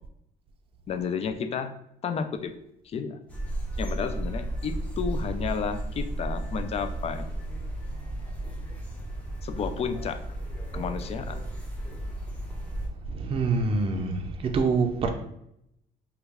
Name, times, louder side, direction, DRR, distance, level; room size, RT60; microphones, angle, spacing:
voice 1, 0.9-1.7 2.0-2.5 2.8-3.2 3.8-7.3 9.4-10.2 10.7-11.4, left 6 dB, 40° left, 9 dB, 0.4 m, -31 dB
sound 1, 3.3-12.9, right 1 dB, 10° left, 0.8 m, -34 dB
voice 2, 13.1-15.1, right 4 dB, 35° right, 3 dB, 0.5 m, -25 dB
3.0 x 2.4 x 3.4 m, 0.75 s
cardioid pair, 110°, 17 cm